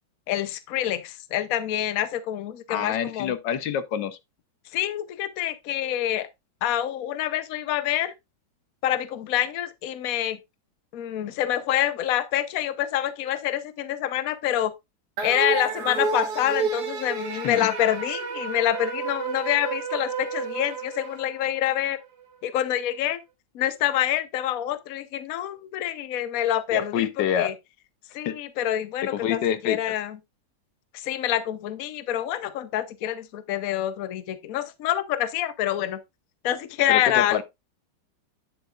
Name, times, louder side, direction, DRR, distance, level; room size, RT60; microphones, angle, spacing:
voice 1, 0.3-3.3 4.7-6.3 6.6-8.1 8.8-10.4 10.9-14.7 15.2-22.0 22.4-23.2 23.5-27.5 28.1-30.2 30.9-36.0 36.4-37.4, left 12 dB, 60° left, 1.1 m, -26 dB
voice 2, 2.7-4.2 17.4-17.7 26.7-27.5 28.2-28.4 29.1-29.8 36.9-37.4, left 9 dB, 80° left, 1.4 m, -27 dB
sound 1, 15.2-21.7, right 5 dB, 65° right, 1.7 m, -30 dB
10.0 x 7.4 x 2.4 m
omnidirectional pair, 1.9 m